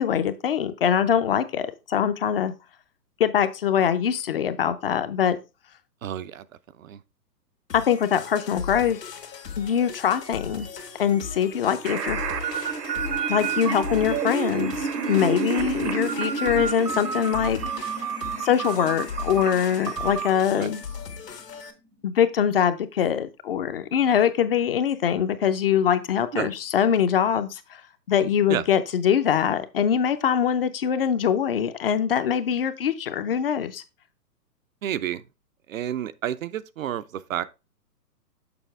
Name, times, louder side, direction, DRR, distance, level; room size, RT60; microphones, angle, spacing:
voice 1, 0.0-2.5 3.2-5.4 7.7-9.0 9.6-10.7 11.0-12.2 13.3-17.6 18.4-20.8 22.0-27.6 28.1-33.8, left 8 dB, 40° left, 0.5 m, -23 dB
voice 2, 6.0-6.5 6.8-7.0 20.6-20.7 26.3-26.5 28.5-28.6 34.8-35.2 35.7-37.4, right 10 dB, 55° right, 0.5 m, -30 dB
sound 1, 7.7-21.7, left 6 dB, 80° left, 1.6 m, -38 dB
sound 2, 10.2-22.2, right 3 dB, 90° right, 2.9 m, -35 dB
sound 3, 11.8-20.3, right 8 dB, 75° right, 1.0 m, -31 dB
6.9 x 5.4 x 3.4 m
hypercardioid pair, 130°, 48 cm